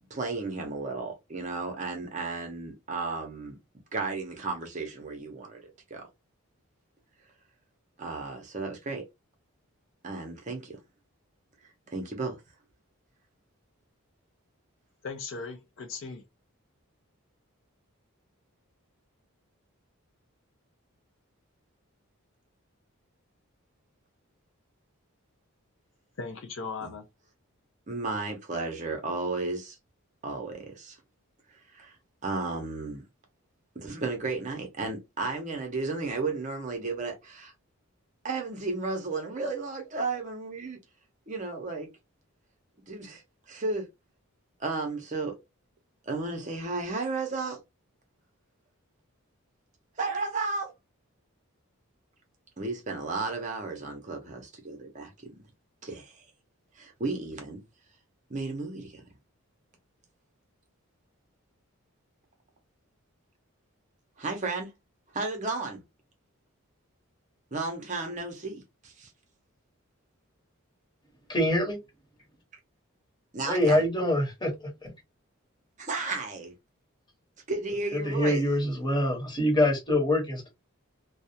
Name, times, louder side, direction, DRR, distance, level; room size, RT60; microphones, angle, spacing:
voice 1, 0.1-3.6 3.9-6.1 8.0-9.0 10.0-10.8 11.9-12.4 26.8-26.9 27.9-29.8 30.2-31.0 31.5-32.0 32.2-33.0 33.8-37.5 38.2-40.8 41.3-41.9 42.9-43.9 44.6-45.4 46.0-47.6 50.0-50.7 52.6-55.1 55.8-56.2 56.7-57.6 58.3-59.0 64.2-64.7 65.1-65.8 67.5-69.1 73.3-73.9 75.8-76.5 77.5-78.4, right 3 dB, 35° right, 0.6 m, -33 dB
voice 2, 15.0-16.2 26.2-27.1, left 4 dB, 60° left, 0.5 m, -38 dB
voice 3, 71.3-71.8 73.5-74.9 77.9-80.5, left 1 dB, 20° left, 0.9 m, -25 dB
2.3 x 2.0 x 2.7 m
head